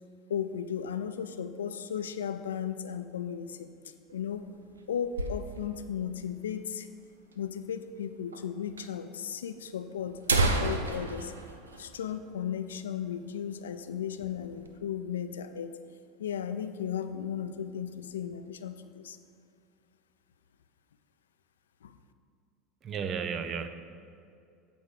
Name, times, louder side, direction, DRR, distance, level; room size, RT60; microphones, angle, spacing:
voice 1, 0.3-4.5 4.9-6.9 7.4-11.3 11.8-15.8 16.2-19.2 21.8-22.0, left 8 dB, 80° left, 10 dB, 0.4 m, -35 dB
sound 1, 4.1-5.9 6.2-6.3 6.5-6.6 7.3-7.4 8.3-8.4 8.8-8.9 9.6-9.7 10.1-12.7 13.0-13.1 13.5-13.8 14.2-14.8, right 2 dB, 90° right, 0.5 m, -31 dB
voice 2, 22.8-23.7, right 6 dB, 40° right, 9 dB, 0.6 m, -33 dB
8.2 x 4.5 x 6.6 m, 2.4 s
hypercardioid pair, 75°, 0 cm